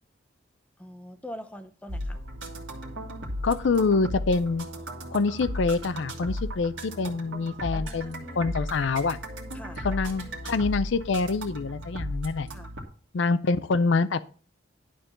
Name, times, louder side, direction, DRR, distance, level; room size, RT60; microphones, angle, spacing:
voice 1, 0.8-2.2 7.7-8.5 9.5-10.0 12.5-12.8, equal, 5° left, 7 dB, 0.7 m, -44 dB
sound 1, 1.9-12.8, equal, 75° right, 1.9 m, -36 dB
voice 2, 3.4-4.7 5.1-9.2 9.8-12.5 13.1-14.2, left 4 dB, 70° left, 14 dB, 0.5 m, -26 dB
11.0 x 3.7 x 6.8 m, 0.42 s
head